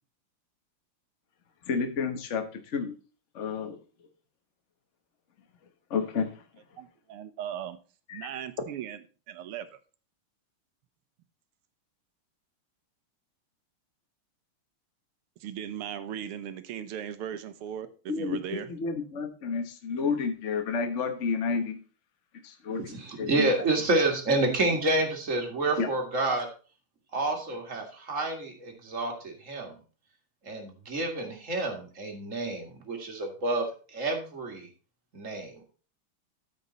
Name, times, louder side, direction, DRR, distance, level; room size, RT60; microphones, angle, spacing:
voice 1, 1.7-2.9 3.3-3.8 5.9-6.3 8.1-8.3 18.1-21.8 22.4-23.5 25.8-25.9, left 5 dB, 40° left, 5 dB, 1.2 m, -31 dB
voice 2, 6.8-7.8 8.1-9.0 9.3-9.7 15.4-17.9 18.2-18.7, right 9 dB, 90° right, 11 dB, 1.8 m, -37 dB
voice 3, 22.8-26.5 27.1-29.7 30.4-34.7 35.1-35.6, right 2 dB, 35° right, 2 dB, 2.1 m, -29 dB
13.5 x 5.3 x 4.0 m, 0.37 s
omnidirectional pair, 2.4 m